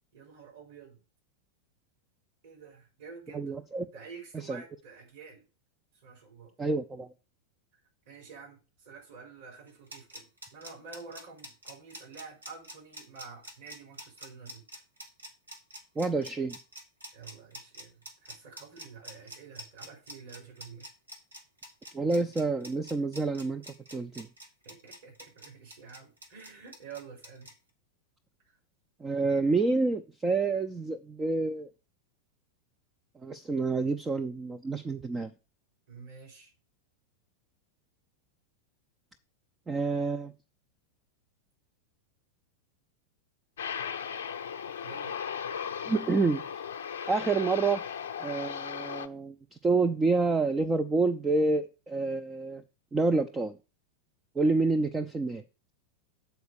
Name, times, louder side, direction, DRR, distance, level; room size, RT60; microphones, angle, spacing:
voice 1, 0.1-1.0 2.4-3.6 3.9-5.4 5.9-6.5 8.0-14.6 17.1-20.9 24.6-27.5 35.9-36.5 44.8-45.2, right 5 dB, 55° right, 4.4 m, -49 dB
voice 2, 3.3-3.9 4.4-4.6 6.6-7.1 16.0-16.6 21.9-23.6 23.9-24.3 29.0-31.7 33.2-35.3 39.7-40.3 45.9-46.4 47.1-47.8 48.2-49.4 49.6-52.6 52.9-53.6 54.4-55.4, right 3 dB, 15° right, 0.5 m, -28 dB
sound 1, 9.7-27.5, right 1 dB, 80° right, 1.6 m, -46 dB
Aircraft, 43.6-49.1, left 7 dB, 60° left, 0.6 m, -37 dB
8.0 x 4.3 x 6.5 m
figure-of-eight pair, 90°, 0 cm